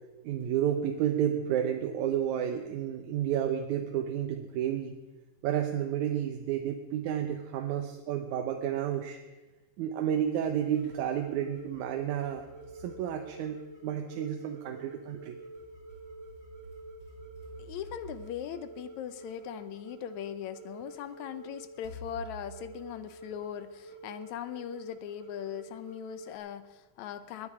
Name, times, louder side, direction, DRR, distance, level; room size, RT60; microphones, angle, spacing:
voice 1, 0.2-5.0 5.4-9.2 9.8-12.4 12.7-15.4, right 10 dB, 75° right, 4 dB, 2.1 m, -31 dB
sound 1, 10.1-11.0 11.6-14.0 15.1-19.5 20.4-20.5 21.8-23.7, right 1 dB, 40° left, 7.4 m, -51 dB
sound 2, 10.7-26.4, right 2 dB, 5° right, 2.5 m, -48 dB
voice 2, 17.6-27.5, left 10 dB, 75° left, 12 dB, 1.9 m, -40 dB
19.5 x 11.0 x 4.8 m, 1.2 s
omnidirectional pair, 3.6 m